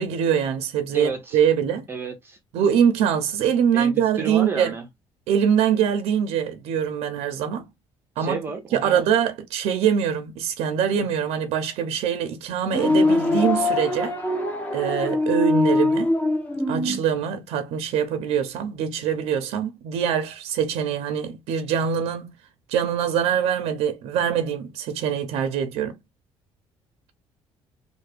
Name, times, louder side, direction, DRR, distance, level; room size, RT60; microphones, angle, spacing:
voice 1, 0.0-1.9 2.5-4.7 5.3-7.6 8.2-8.4 8.7-14.1 14.7-16.1 16.7-22.3 22.7-26.0, right 8 dB, 85° right, 0.6 m, -23 dB
voice 2, 0.9-1.4 1.9-2.4 3.7-4.8 8.2-9.0, right 4 dB, 20° right, 0.5 m, -31 dB
sound 1, 12.6-17.0, left 2 dB, 15° left, 0.7 m, -22 dB
3.3 x 2.2 x 3.2 m
cardioid pair, 175°, 10 cm